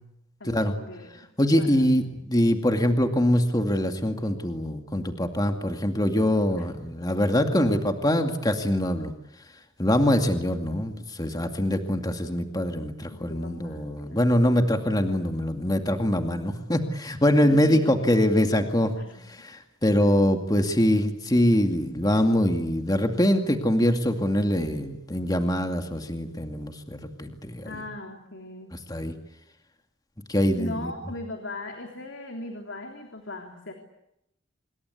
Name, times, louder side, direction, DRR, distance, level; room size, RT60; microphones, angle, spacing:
voice 1, 0.4-1.1 1.4-1.9 6.6-6.7 13.1-14.3 17.4-18.2 19.0-19.5 27.6-28.7 30.6-33.7, left 2 dB, 70° left, 3 dB, 3.3 m, -39 dB
voice 2, 1.4-9.1 9.8-18.9 19.3-27.8 28.9-29.2 30.3-30.9, left 1 dB, 20° left, 5 dB, 2.3 m, -24 dB
26.5 x 22.5 x 8.4 m, 0.84 s
head